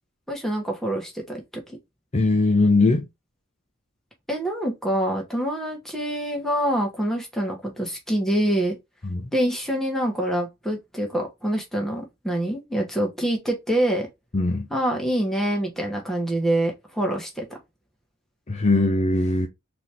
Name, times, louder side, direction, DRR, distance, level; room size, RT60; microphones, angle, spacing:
voice 1, 0.3-1.8 4.3-8.8 9.3-14.1 14.7-17.5, right 1 dB, ahead, 1.2 m, -26 dB
voice 2, 2.1-3.0 9.1-9.3 14.3-14.7 18.5-19.5, left 2 dB, 30° left, 0.6 m, -20 dB
4.0 x 2.9 x 3.4 m
head